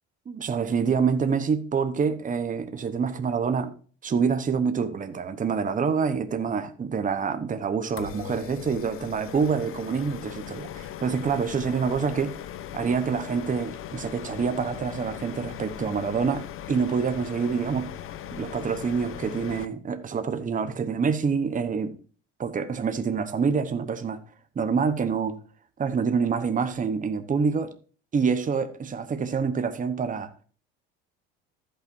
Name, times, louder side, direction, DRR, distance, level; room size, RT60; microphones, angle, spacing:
voice 1, 0.3-3.7 4.0-12.3 12.7-17.9 18.3-21.9 22.4-24.2 24.5-25.4 25.8-27.7 28.1-30.3, right 6 dB, 25° right, 9 dB, 1.1 m, -26 dB
sound 1, 8.0-19.6, left 11 dB, 45° left, 0.8 m, -39 dB
15.0 x 5.7 x 2.7 m, 0.39 s
supercardioid pair, 85°, 30 cm